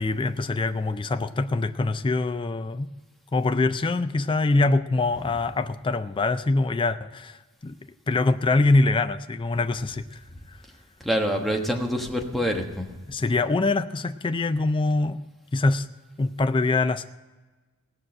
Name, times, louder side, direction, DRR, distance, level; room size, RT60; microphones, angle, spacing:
voice 1, 0.0-2.9 3.3-7.8 8.1-10.2 10.5-10.6 13.1-15.2 15.5-15.9 16.2-17.1, left 3 dB, 20° left, 10 dB, 0.4 m, -24 dB
voice 2, 11.0-13.0, equal, ahead, 1 dB, 1.2 m, -26 dB
17.5 x 6.2 x 7.5 m, 1.2 s
head